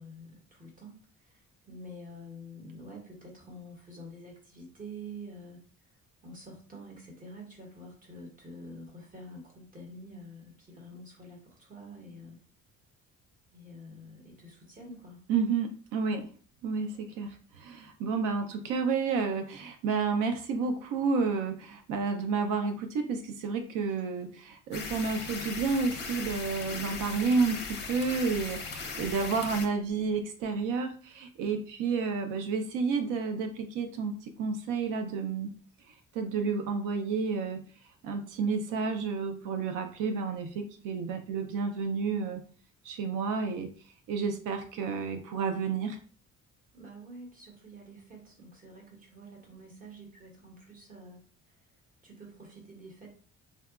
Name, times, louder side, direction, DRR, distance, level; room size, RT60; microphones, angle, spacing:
voice 1, 0.0-5.6 6.2-12.4 13.5-15.2 23.8-24.1 46.7-51.2 51.5-51.6 52.0-53.1, equal, 25° right, -1 dB, 1.1 m, -48 dB
voice 2, 15.3-16.3 16.6-35.5 36.1-37.6 38.0-42.4 42.8-43.7 44.1-46.0, right 5 dB, 90° right, 6 dB, 0.5 m, -30 dB
sound 1, 24.7-29.7, left 4 dB, 35° left, 0.5 m, -38 dB
3.8 x 2.2 x 2.3 m, 0.43 s
cardioid pair, 135°, 30 cm